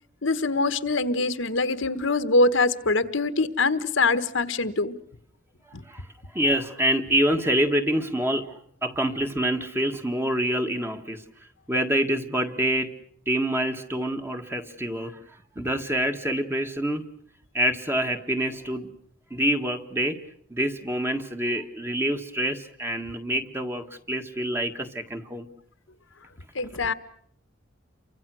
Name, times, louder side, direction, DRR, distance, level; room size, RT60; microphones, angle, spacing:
voice 1, 0.2-4.9 26.5-26.9, left 3 dB, 70° left, 12 dB, 1.4 m, -23 dB
voice 2, 6.3-8.5 8.8-11.2 11.7-12.9 13.3-15.2 15.6-17.0 17.5-18.9 19.3-20.2 20.5-25.5, right 1 dB, 10° right, 6 dB, 1.7 m, -26 dB
29.0 x 24.5 x 6.3 m, 0.63 s
head